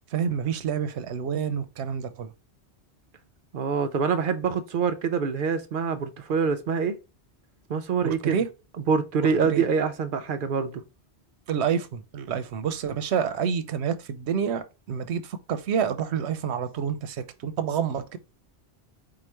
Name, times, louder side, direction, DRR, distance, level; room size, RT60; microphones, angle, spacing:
voice 1, 0.1-2.3 8.0-8.5 9.5-9.6 11.5-18.2, right 7 dB, 90° right, 0.9 m, -28 dB
voice 2, 3.5-7.0 7.7-8.4 8.9-10.8, right 6 dB, 60° right, 0.6 m, -25 dB
4.8 x 2.4 x 4.3 m
omnidirectional pair, 1.1 m